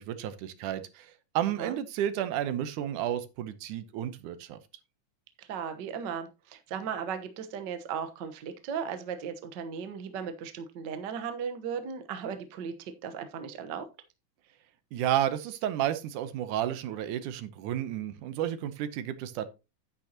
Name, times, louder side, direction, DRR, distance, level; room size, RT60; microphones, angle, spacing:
voice 1, 0.0-4.6 14.9-19.5, right 11 dB, 80° right, 2.3 m, -32 dB
voice 2, 5.4-13.9, right 7 dB, 65° right, 1.1 m, -36 dB
10.0 x 9.1 x 2.9 m
omnidirectional pair, 3.6 m